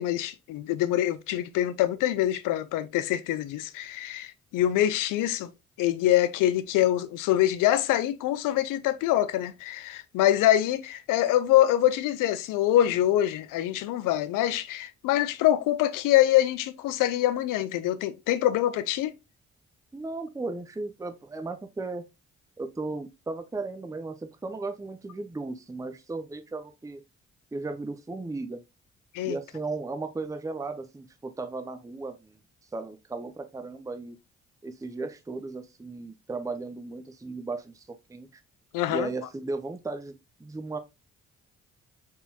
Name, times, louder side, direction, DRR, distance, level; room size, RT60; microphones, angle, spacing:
voice 1, 0.0-5.5 5.8-19.1 29.1-29.4 38.7-39.1, left 13 dB, 70° left, 0.6 m, -25 dB
voice 2, 19.9-22.0 22.6-27.0 27.5-28.6 29.2-32.4 32.7-34.2 34.6-38.4 38.9-40.1 40.4-40.8, right 3 dB, 10° right, 0.6 m, -36 dB
4.1 x 3.6 x 2.7 m
hypercardioid pair, 45°, 33 cm